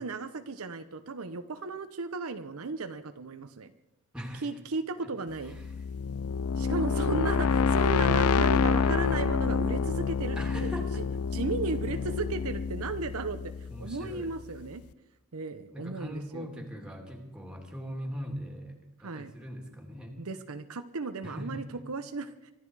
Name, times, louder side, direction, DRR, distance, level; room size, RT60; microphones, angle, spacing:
voice 1, 0.0-3.7 4.4-5.6 6.6-10.7 11.3-13.4 13.8-14.8 15.3-16.5 19.0-19.3 20.2-22.5, right 3 dB, 70° right, 9 dB, 0.8 m, -35 dB
voice 2, 4.1-4.5 5.4-5.6 8.8-9.0 10.4-11.0 13.7-14.3 15.7-20.1 21.2-21.7, equal, 5° right, 2 dB, 2.8 m, -40 dB
sound 1, 5.5-14.3, left 5 dB, 70° left, 0.5 m, -27 dB
24.5 x 12.5 x 4.8 m, 0.97 s
head